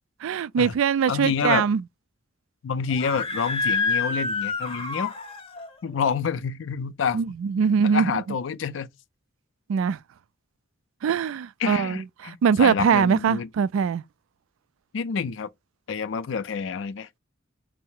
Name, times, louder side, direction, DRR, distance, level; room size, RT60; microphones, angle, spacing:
voice 1, 0.2-1.8 7.1-8.2 9.7-10.0 11.0-14.0, right 6 dB, 90° right, 0.3 m, -22 dB
voice 2, 1.1-1.7 2.6-5.1 5.8-7.2 7.6-8.9 11.6-13.5 14.9-15.5 15.9-17.1, left 6 dB, 70° left, 0.4 m, -28 dB
Screaming, 2.9-5.7, left 4 dB, 30° left, 0.7 m, -28 dB
4.6 x 2.0 x 4.3 m
head